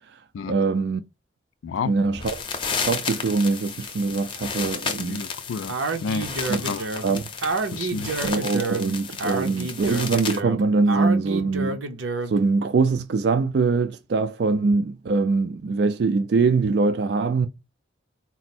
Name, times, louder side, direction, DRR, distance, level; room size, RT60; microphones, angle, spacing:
voice 1, 0.5-1.0 1.9-2.4 2.8-5.2 6.5-6.6 7.0-7.2 8.2-11.8 12.3-17.5, right 4 dB, 60° right, 0.3 m, -23 dB
sound 1, 2.1-10.4, left 5 dB, 25° left, 0.6 m, -32 dB
voice 2, 5.0-6.9 7.7-8.2, left 5 dB, 90° left, 0.3 m, -31 dB
Speech, 5.7-12.4, right 3 dB, 85° right, 0.7 m, -29 dB
4.2 x 2.0 x 4.1 m
head